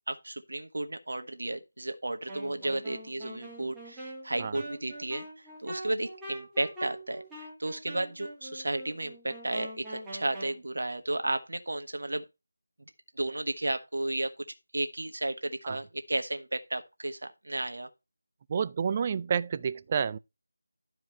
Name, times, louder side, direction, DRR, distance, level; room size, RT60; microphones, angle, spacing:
voice 1, 0.1-12.2 12.8-14.4 14.7-17.9, right 2 dB, 70° right, 1.4 m, -33 dB
Wind instrument woodwind instrument, 2.3-10.6, right 1 dB, 5° right, 2.3 m, -43 dB
voice 2, 18.5-20.2, right 6 dB, 25° right, 0.4 m, -29 dB
12.0 x 4.8 x 4.4 m
figure-of-eight pair, 170°, 0 cm